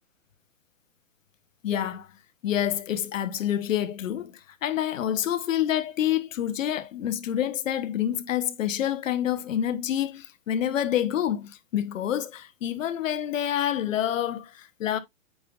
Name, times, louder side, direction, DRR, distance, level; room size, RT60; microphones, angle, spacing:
voice 1, 1.6-2.1 2.4-15.0, left 11 dB, 75° left, 1.1 m, -27 dB
8.5 x 5.2 x 2.4 m
hypercardioid pair, 155°, 39 cm